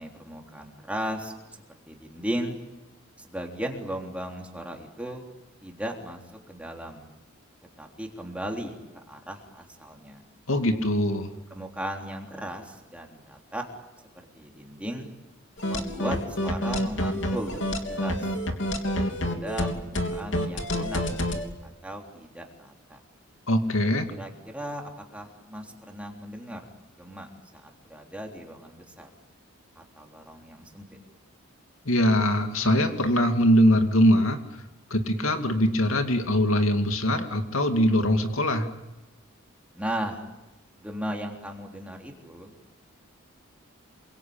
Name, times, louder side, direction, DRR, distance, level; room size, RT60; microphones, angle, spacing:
voice 1, 0.0-2.6 3.2-5.2 5.6-6.2 6.5-7.1 7.8-8.7 9.1-10.2 11.5-13.6 14.3-15.1 15.7-18.4 18.9-21.0 21.8-23.0 24.2-26.6 27.0-27.3 27.5-29.1 29.8-30.9 39.7-40.2 40.8-42.5, equal, 5° right, 1 dB, 3.6 m, -36 dB
voice 2, 10.5-11.3 23.5-24.1 31.9-34.4 34.9-38.7, equal, 80° left, 6 dB, 2.5 m, -22 dB
sound 1, 15.6-21.4, equal, 60° left, 3.3 m, -28 dB
28.5 x 24.0 x 8.8 m, 1.0 s
head